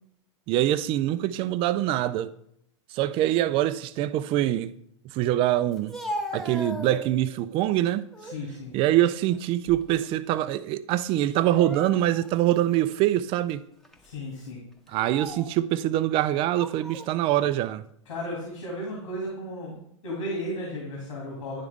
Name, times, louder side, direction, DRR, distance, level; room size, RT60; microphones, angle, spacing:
voice 1, 0.5-2.3 2.9-4.7 5.1-6.0 6.3-8.1 8.7-13.6 14.9-17.8, right 13 dB, 35° right, 0.4 m, -24 dB
Speech, 5.7-7.4 7.9-8.4 8.9-10.1 10.4-10.6 11.4-12.4 12.9-13.0 13.8-14.1 14.9-15.6 16.4-17.1, equal, ahead, 0.9 m, -38 dB
voice 2, 8.2-8.8 14.0-14.6 14.9-15.0 18.1-19.7 20.0-21.6, left 1 dB, 80° left, 2.5 m, -34 dB
10.5 x 3.5 x 3.5 m
hypercardioid pair, 115°, 16 cm